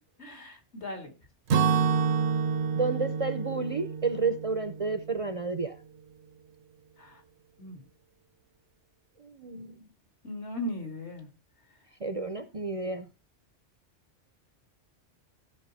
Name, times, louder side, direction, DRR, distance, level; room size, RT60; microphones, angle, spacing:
voice 1, 0.2-1.1 7.0-7.2 7.6-7.8 10.2-11.3, left 1 dB, 65° left, 2.7 m, -38 dB
Acoustic guitar / Strum, 1.5-5.5, right 6 dB, 65° right, 1.0 m, -28 dB
voice 2, 2.7-5.8 9.2-9.9 12.0-13.1, right 4 dB, 35° right, 0.6 m, -31 dB
15.0 x 6.0 x 4.1 m
omnidirectional pair, 1.2 m